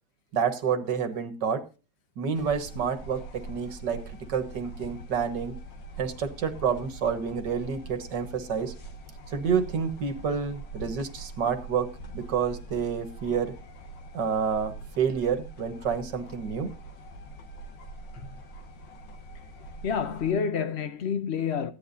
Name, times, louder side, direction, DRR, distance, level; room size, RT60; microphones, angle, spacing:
voice 1, 0.3-1.6 2.2-5.6 6.0-8.7 9.3-13.5 14.1-16.7, right 6 dB, 60° right, 2.0 m, -29 dB
sound 1, 2.3-20.3, right 2 dB, 65° left, 2.3 m, -43 dB
voice 2, 19.8-21.7, left 6 dB, 85° left, 0.5 m, -28 dB
15.5 x 10.0 x 2.6 m
omnidirectional pair, 2.2 m